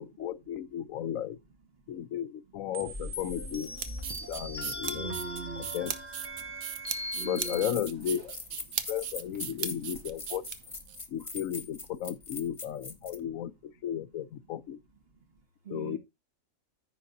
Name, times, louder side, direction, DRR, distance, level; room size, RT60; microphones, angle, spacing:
voice 1, 0.0-1.4 1.9-3.7 4.3-5.2 5.7-5.9 7.2-8.4 8.9-10.4 11.1-14.8 15.7-16.0, left 10 dB, 80° left, 1.1 m, -34 dB
sound 1, 2.7-7.7, equal, 10° right, 1.3 m, -39 dB
sound 2, 3.5-11.0, right 8 dB, 75° right, 1.3 m, -38 dB
voice 2, 4.9-5.9 6.4-6.6 7.1-7.8 8.7-8.9 10.9-11.0 13.0-13.1 14.4-14.5 15.1-16.0, right 5 dB, 45° right, 1.6 m, -44 dB
sound 3, 6.8-6.9 7.3-13.2, left 3 dB, 25° left, 1.2 m, -42 dB
14.5 x 5.1 x 2.6 m
omnidirectional pair, 1.4 m